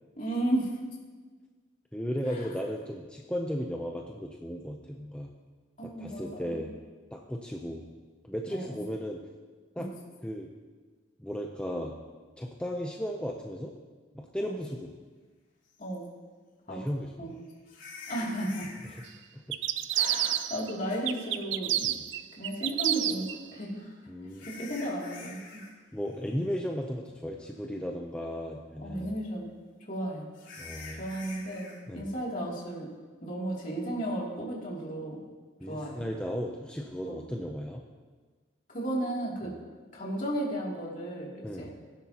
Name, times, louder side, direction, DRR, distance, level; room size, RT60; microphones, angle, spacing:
voice 1, 0.2-0.7 2.3-2.4 5.8-6.6 8.5-8.8 9.8-9.9 14.4-14.6 15.8-16.1 16.7-16.8 17.2-17.3 18.1-18.7 19.9-21.9 22.4-23.8 24.6-25.4 28.8-29.5 29.9-30.3 31.0-32.9 33.2-35.2 35.7-36.0 37.1-37.2 38.7-39.5 39.9-41.7, right 1 dB, 45° left, -4 dB, 2.8 m, -34 dB
voice 2, 1.9-5.3 5.8-6.7 7.1-7.9 8.3-9.2 9.8-9.9 10.2-10.5 11.2-12.0 12.4-13.8 14.1-14.9 16.7-17.4 18.9-19.0 19.3-19.6 21.8-22.0 24.1-24.5 25.9-29.1 30.6-31.0 31.9-32.1 35.6-37.8 39.4-39.6 41.4-41.7, equal, 5° left, 1 dB, 0.5 m, -35 dB
sound 1, 15.8-15.9 17.7-19.1 20.9-21.0 23.5-25.7 26.0-26.3 26.7-26.8 27.4-27.5 30.3-31.8, left 3 dB, 80° left, 3.6 m, -46 dB
sound 2, 19.5-20.7 21.1-23.4, right 12 dB, 75° right, 0.4 m, -29 dB
16.5 x 10.0 x 2.9 m, 1.4 s
head